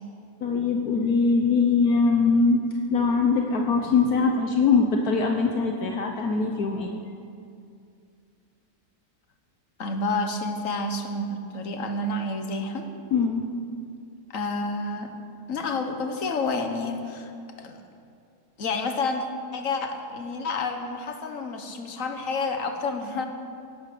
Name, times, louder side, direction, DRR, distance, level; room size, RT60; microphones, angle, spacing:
voice 1, 0.4-2.7 2.9-6.9 13.1-13.4, left 4 dB, 75° left, 2 dB, 1.5 m, -22 dB
voice 2, 9.8-12.9 14.3-15.1 15.5-17.3 17.6-17.8 18.6-19.2 19.5-23.3, left 3 dB, 60° left, 5 dB, 1.7 m, -29 dB
17.5 x 11.5 x 6.9 m, 2.4 s
omnidirectional pair, 1.6 m